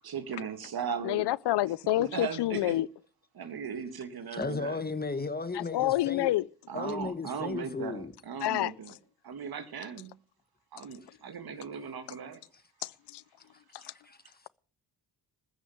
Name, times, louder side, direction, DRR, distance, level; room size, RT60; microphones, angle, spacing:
voice 1, 0.0-1.3 2.0-2.8 3.4-4.8 6.7-8.9 9.2-10.1 10.7-12.4, right 7 dB, 60° right, 2.1 m, -37 dB
voice 2, 1.0-2.9 5.5-6.5 8.4-9.0 11.1-11.2 12.8-13.2 13.7-13.9, left 15 dB, 75° left, 0.6 m, -29 dB
voice 3, 4.3-6.3 6.7-8.1 14.1-14.2, left 3 dB, 20° left, 1.2 m, -34 dB
14.5 x 6.4 x 9.1 m
cardioid pair, 95°, 41 cm